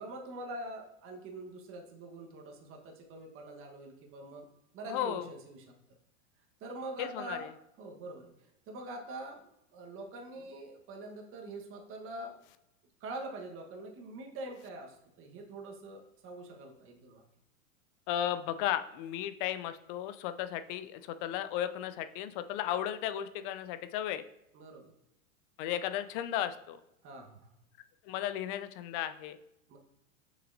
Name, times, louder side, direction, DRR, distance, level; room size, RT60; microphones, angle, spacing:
voice 1, 0.0-4.5 4.7-5.7 6.6-8.3 8.7-12.3 13.0-17.2 24.5-24.9 27.0-27.5 29.7-29.8, right 2 dB, 30° right, 1 dB, 1.3 m, -44 dB
voice 2, 4.9-5.3 7.0-7.5 18.1-24.2 25.6-26.8 28.0-29.4, left 11 dB, 40° left, 11 dB, 0.5 m, -35 dB
6.7 x 5.9 x 2.7 m, 0.83 s
hypercardioid pair, 110°, 41 cm